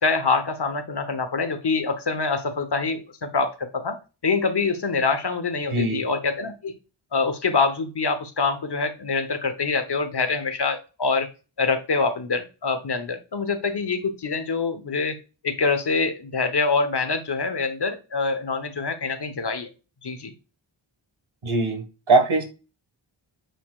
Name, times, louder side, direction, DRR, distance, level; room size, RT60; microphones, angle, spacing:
voice 1, 0.0-4.0 4.2-6.8 7.1-11.3 11.6-15.2 15.4-19.7 20.0-20.3, left 4 dB, 50° left, 9 dB, 1.2 m, -25 dB
voice 2, 5.7-6.0 21.4-22.4, right 3 dB, 75° right, 5 dB, 1.8 m, -21 dB
9.2 x 4.3 x 2.4 m, 0.31 s
cardioid pair, 45°, 49 cm